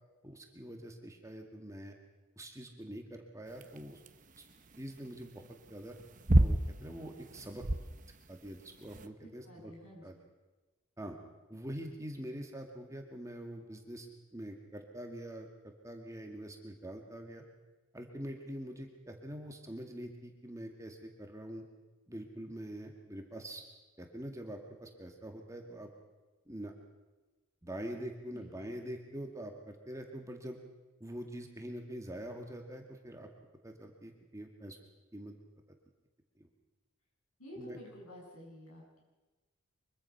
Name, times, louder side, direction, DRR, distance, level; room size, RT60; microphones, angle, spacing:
voice 1, 0.2-2.0 2.4-4.0 4.8-6.0 6.4-7.7 8.3-9.7 10.0-10.2 11.0-11.2 11.5-17.4 17.9-21.6 22.1-23.6 24.0-25.9 26.5-26.7 27.6-30.6 31.0-33.3 33.6-34.8 35.1-35.4 36.4-36.5 37.6-37.8, right 1 dB, 15° right, 3 dB, 2.0 m, -44 dB
sound 1, 3.5-9.1, right 1 dB, 35° right, 1.0 m, -31 dB
voice 2, 9.4-10.2 28.3-28.7 37.4-39.0, left 1 dB, 75° left, -1 dB, 7.5 m, -51 dB
24.5 x 23.0 x 5.8 m, 1.2 s
head